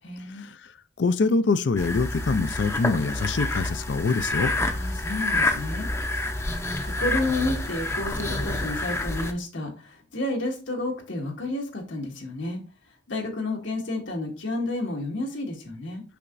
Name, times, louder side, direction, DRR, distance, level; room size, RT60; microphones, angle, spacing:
voice 1, 0.0-0.5 4.7-12.6 13.1-16.0, left 2 dB, 90° left, 1.8 m, -31 dB
voice 2, 1.0-4.5, left 4 dB, 70° left, 0.5 m, -24 dB
sound 1, 1.8-9.3, left 2 dB, 15° left, 0.6 m, -28 dB
6.9 x 5.7 x 2.6 m
head